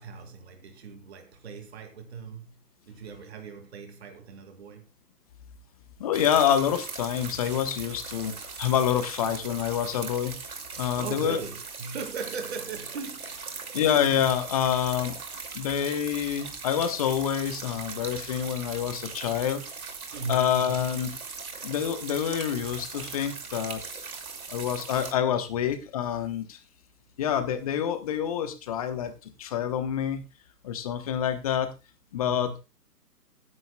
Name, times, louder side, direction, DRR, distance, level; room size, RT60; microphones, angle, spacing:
voice 1, 0.0-2.6 2.9-4.9 10.9-13.7 20.1-20.7 32.2-32.6, right 4 dB, 40° right, 2.3 m, -39 dB
voice 2, 6.0-8.3 8.6-10.4 10.8-11.4 13.7-15.2 15.5-19.6 20.3-21.2 21.6-23.8 24.5-26.6 27.2-30.2 30.6-31.7 32.1-32.6, left 9 dB, 25° left, 1.0 m, -27 dB
sound 1, 6.1-25.1, right 5 dB, 60° right, 2.6 m, -40 dB
16.5 x 9.7 x 2.3 m
figure-of-eight pair, 135°, 47 cm